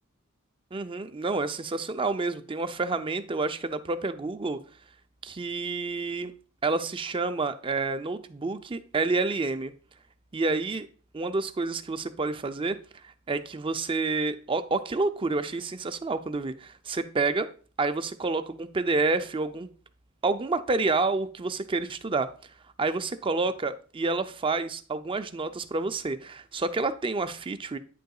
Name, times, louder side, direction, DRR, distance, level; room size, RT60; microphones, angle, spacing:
voice 1, 0.7-4.6 5.2-6.3 6.6-9.7 10.3-10.9 11.1-12.8 13.3-17.5 17.8-19.7 20.2-22.3 22.8-27.8, right 3 dB, 25° right, 0.5 m, -29 dB
9.2 x 6.5 x 2.4 m
head